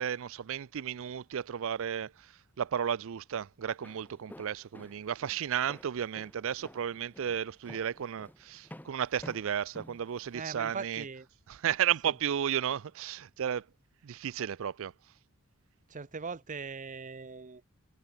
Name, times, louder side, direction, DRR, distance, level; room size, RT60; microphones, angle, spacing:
voice 1, 0.0-11.0 11.5-13.7 14.0-14.9, right 9 dB, 65° right, 0.4 m, -33 dB
Walk footsteps, 3.6-10.8, left 1 dB, 10° left, 1.6 m, -52 dB
voice 2, 10.3-11.3 12.0-12.1 15.9-17.6, right 5 dB, 35° right, 0.8 m, -40 dB
head